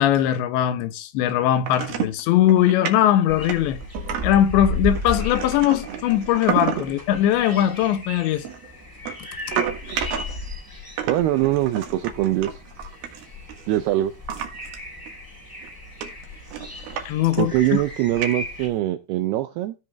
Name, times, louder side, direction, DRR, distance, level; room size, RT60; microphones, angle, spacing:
voice 1, 0.0-3.8 4.2-8.4 17.1-17.8, left 11 dB, 75° left, 3.1 m, -20 dB
sound 1, 1.7-2.2 2.5-2.9 3.4-4.5 4.9-7.0 7.3-7.7 8.5-10.5 11.0-13.8 14.3-14.8 15.1-15.2 15.6-15.7 16.0-17.1 17.3-17.8 18.2-18.7, right 8 dB, 65° right, 3.2 m, -31 dB
sound 2, 3.3-18.7, left 1 dB, 5° left, 2.3 m, -35 dB
voice 2, 11.1-12.6 13.7-14.1 17.4-19.8, right 14 dB, 85° right, 2.3 m, -22 dB
16.0 x 5.6 x 3.4 m
omnidirectional pair, 5.3 m